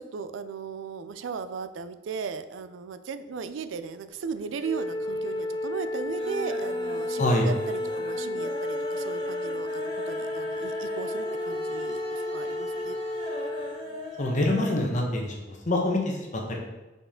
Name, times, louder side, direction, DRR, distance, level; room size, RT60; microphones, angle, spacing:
voice 1, 0.0-13.0, right 5 dB, 90° right, 12 dB, 0.4 m, -37 dB
sound 1, 4.1-4.7 5.0-5.5 5.8-14.9 15.2-15.3 15.6-15.7, equal, 25° right, 1.1 m, -41 dB
Wind instrument woodwind instrument, 4.6-13.8, left 1 dB, 20° left, 0.3 m, -32 dB
voice 2, 7.2-7.5 14.2-16.6, left 1 dB, 40° left, 0 dB, 1.1 m, -25 dB
5.4 x 4.8 x 3.7 m, 1.1 s
head